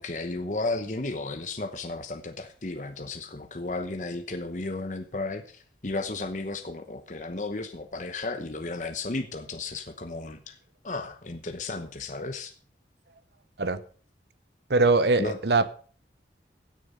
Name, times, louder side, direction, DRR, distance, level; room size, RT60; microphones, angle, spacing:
voice 1, 0.0-10.6 10.8-12.5 15.2-15.4, left 2 dB, 45° left, 1.0 m, -34 dB
voice 2, 14.7-15.7, right 3 dB, 70° right, 0.9 m, -22 dB
16.0 x 6.8 x 5.5 m
head